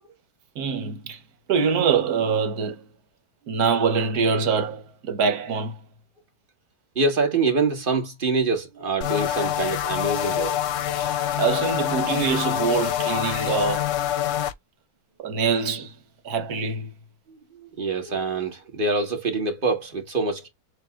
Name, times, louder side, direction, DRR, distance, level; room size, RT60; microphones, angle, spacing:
voice 1, 0.5-1.2 1.5-2.8 3.5-5.8 11.0-11.1 11.4-13.9 15.2-15.9 16.2-16.9, right 5 dB, 80° right, 1.5 m, -24 dB
voice 2, 6.9-10.6 17.8-20.5, right 3 dB, 35° right, 1.6 m, -25 dB
sound 1, 9.0-14.5, left 11 dB, 65° left, 0.9 m, -25 dB
6.9 x 2.7 x 2.4 m
omnidirectional pair, 1.6 m